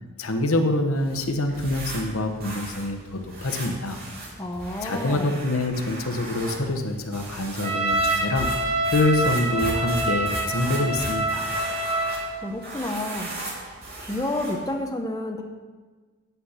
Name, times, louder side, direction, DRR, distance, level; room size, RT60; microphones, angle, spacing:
voice 1, 0.2-4.0 4.8-8.5 8.9-11.6, left 2 dB, 75° left, 6 dB, 1.0 m, -25 dB
sound 1, 0.9-14.7, right 2 dB, 45° right, 2.5 m, -37 dB
voice 2, 4.4-5.4 12.4-13.3 14.0-15.4, left 1 dB, 15° left, 2 dB, 0.7 m, -30 dB
Trumpet, 7.6-12.4, right 2 dB, 25° right, 1.0 m, -26 dB
9.3 x 5.7 x 8.1 m, 1.4 s
head